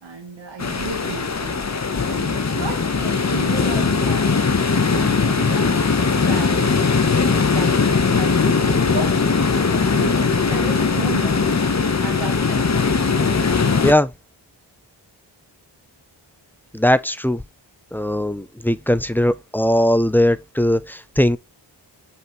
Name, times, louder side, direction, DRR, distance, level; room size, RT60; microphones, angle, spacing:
voice 1, 0.0-4.4 4.8-6.9 7.3-9.3 9.7-11.5 12.0-12.7, right 4 dB, 70° right, 1.6 m, -34 dB
sound 1, 0.6-13.9, left 4 dB, 35° left, 1.1 m, -19 dB
voice 2, 16.7-17.4 17.9-21.4, left 1 dB, 5° left, 0.4 m, -19 dB
5.7 x 5.7 x 3.0 m
wide cardioid pair, 85°, 45 cm